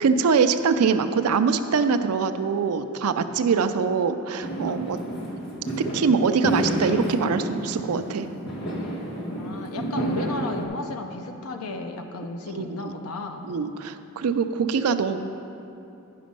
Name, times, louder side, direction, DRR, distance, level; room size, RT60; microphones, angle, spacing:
voice 1, 0.0-5.0 5.8-8.3 12.5-12.7 13.4-15.2, right 5 dB, 85° right, 9 dB, 0.4 m, -23 dB
Fireworks, 4.4-10.6, right 1 dB, 55° left, 1.6 m, -30 dB
voice 2, 9.3-13.5, left 2 dB, 90° left, 5 dB, 0.6 m, -34 dB
10.5 x 5.1 x 5.4 m, 2.7 s
head